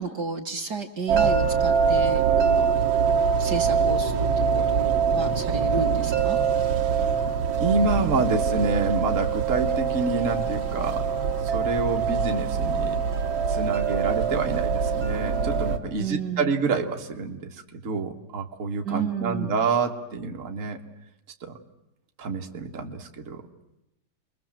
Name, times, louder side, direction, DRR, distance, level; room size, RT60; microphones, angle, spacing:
voice 1, 0.0-2.7 3.4-6.4 16.0-16.5 18.8-19.5, right 4 dB, 55° right, 2 dB, 2.1 m, -32 dB
sound 1, 1.1-15.8, right 6 dB, 80° right, 2.7 m, -24 dB
voice 2, 7.6-13.0 13.5-20.8 21.4-21.5 22.2-23.4, right 4 dB, 40° right, 3 dB, 2.1 m, -28 dB
29.0 x 22.5 x 7.5 m, 0.89 s
omnidirectional pair, 2.2 m